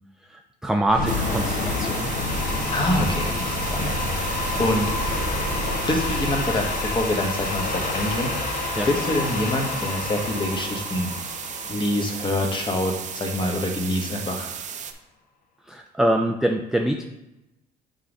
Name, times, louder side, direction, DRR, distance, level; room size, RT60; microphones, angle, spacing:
voice 1, 0.2-2.1 8.8-8.9 15.6-17.1, right 1 dB, 5° right, 3 dB, 0.3 m, -24 dB
sound 1, 0.9-13.0, left 3 dB, 55° left, 0.9 m, -29 dB
sound 2, 1.1-14.9, right 7 dB, 45° right, 0.6 m, -35 dB
sound 3, 2.2-8.2, equal, 70° left, 1.5 m, -32 dB
voice 2, 2.7-3.9 4.6-4.8 5.8-8.3 8.8-11.1 11.7-14.5, left 1 dB, 30° left, 2 dB, 1.1 m, -25 dB
5.4 x 3.9 x 4.9 m, 0.93 s
cardioid pair, 110°, 17 cm